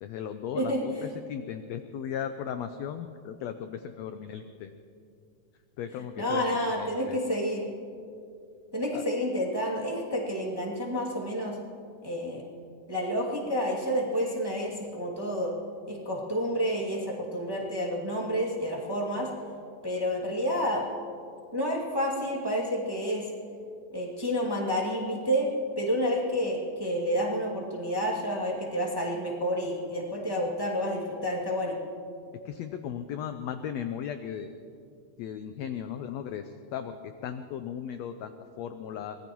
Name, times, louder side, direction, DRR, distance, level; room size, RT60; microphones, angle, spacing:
voice 1, 0.0-4.7 5.8-7.2 8.9-9.0 32.4-34.5 35.2-39.2, left 8 dB, 80° left, 8 dB, 1.6 m, -37 dB
voice 2, 0.5-1.1 6.2-7.6 8.7-11.6 12.0-12.4 12.9-15.5 15.9-19.3 19.8-20.8 21.5-23.3 23.9-31.8, equal, 10° right, -4 dB, 1.6 m, -29 dB
24.0 x 19.5 x 3.1 m, 2.4 s
omnidirectional pair, 3.7 m